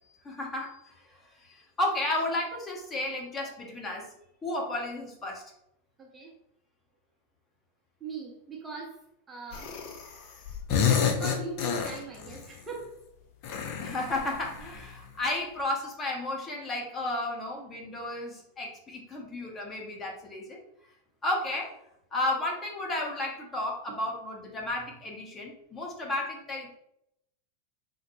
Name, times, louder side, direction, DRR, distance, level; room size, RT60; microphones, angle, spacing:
voice 1, 0.2-4.1 4.4-5.4 13.8-20.6 21.2-21.7 22.1-26.7, left 2 dB, 20° left, -1 dB, 1.0 m, -33 dB
voice 2, 6.0-6.3 8.0-9.0 9.3-9.7 11.1-13.1, right 4 dB, 20° right, -2 dB, 0.7 m, -40 dB
sound 1, 9.5-10.2 10.4-12.4 13.4-14.9, left 7 dB, 50° left, 0.6 m, -29 dB
3.7 x 2.1 x 3.1 m, 0.79 s
figure-of-eight pair, 90°, 0 cm